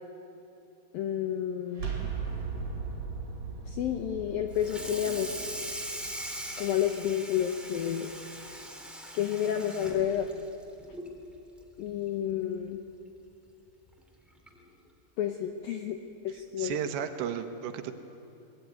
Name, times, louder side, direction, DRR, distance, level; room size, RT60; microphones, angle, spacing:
voice 1, 0.9-1.9 3.7-5.3 6.6-8.1 9.1-10.3 11.8-12.8 15.2-16.8, left 10 dB, 80° left, 4 dB, 2.1 m, -30 dB
sound 1, 1.7-7.5, right 5 dB, 35° right, 4.4 m, -38 dB
Water tap faucet / Sink (filling or washing), 4.5-11.2 11.6-11.8 12.2-12.3 12.7-12.8 13.9-14.0 14.5-14.7, right 1 dB, ahead, 0.9 m, -41 dB
voice 2, 16.3-17.9, right 9 dB, 75° right, 7 dB, 3.1 m, -34 dB
23.0 x 19.5 x 9.3 m, 2.8 s
omnidirectional pair, 5.4 m